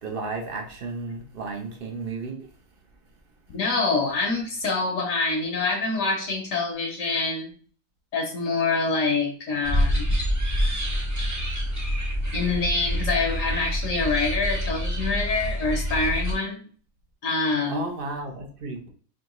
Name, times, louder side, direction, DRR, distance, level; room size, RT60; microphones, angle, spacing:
voice 1, 0.0-2.5 17.7-18.9, right 3 dB, 50° right, 0.7 m, -33 dB
voice 2, 3.5-7.5 8.1-10.1 12.3-16.6 17.2-17.8, left 3 dB, 65° left, 1.1 m, -26 dB
sound 1, 9.6-16.3, equal, 20° right, 0.6 m, -26 dB
4.5 x 2.8 x 3.0 m
omnidirectional pair, 1.5 m